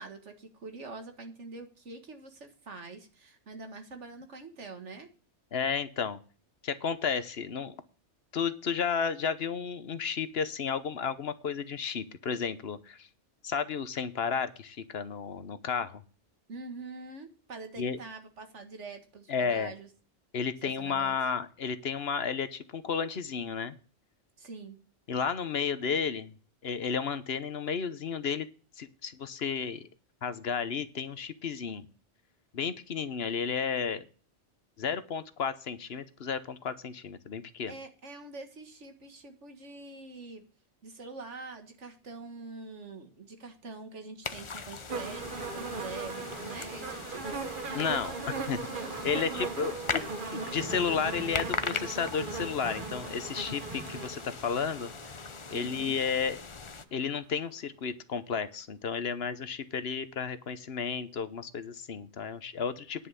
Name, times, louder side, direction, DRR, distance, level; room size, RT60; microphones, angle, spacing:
voice 1, 0.0-5.1 16.5-19.9 20.6-21.2 24.4-24.8 37.7-40.5 40.8-47.4 48.7-49.8 55.5-56.0, right 3 dB, 80° right, 6 dB, 2.0 m, -45 dB
voice 2, 5.5-6.2 6.6-7.7 8.3-13.1 13.4-16.0 17.8-18.0 19.3-19.7 20.3-23.8 25.1-26.3 26.6-28.5 28.8-29.9 30.2-31.9 32.5-34.0 34.8-37.8 47.7-48.6 49.0-50.0 50.3-54.9 55.5-56.4 56.9-63.1, left 6 dB, 60° left, 12 dB, 1.1 m, -32 dB
sound 1, 44.2-56.9, left 4 dB, 30° left, 0.6 m, -40 dB
sound 2, 44.9-56.0 56.9-57.0, right 4 dB, 45° right, 1.2 m, -39 dB
sound 3, 45.2-54.1, right 2 dB, 25° right, 1.4 m, -48 dB
10.0 x 5.6 x 8.2 m, 0.38 s
omnidirectional pair, 1.2 m